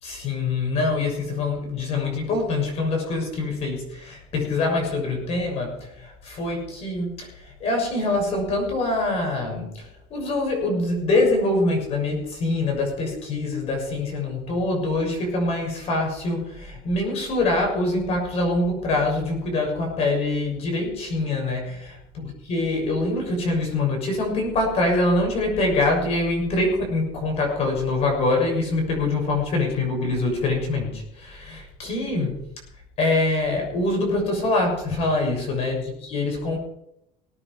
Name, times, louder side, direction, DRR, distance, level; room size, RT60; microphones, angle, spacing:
voice 1, 0.0-32.4 33.0-36.6, left 2 dB, 40° left, 2 dB, 6.6 m, -24 dB
20.5 x 9.8 x 5.0 m, 0.78 s
cardioid pair, 170°, 16 cm